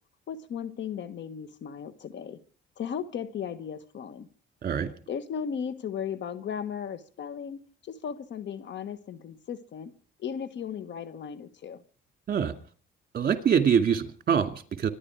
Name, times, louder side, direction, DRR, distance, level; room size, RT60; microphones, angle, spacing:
voice 1, 0.3-2.4 2.8-4.3 5.1-9.9 10.2-11.8, left 7 dB, 65° left, 13 dB, 1.5 m, -36 dB
voice 2, 13.1-14.9, right 7 dB, 50° right, 7 dB, 2.4 m, -24 dB
25.0 x 11.0 x 4.8 m, 0.43 s
cardioid pair, 90°, 20 cm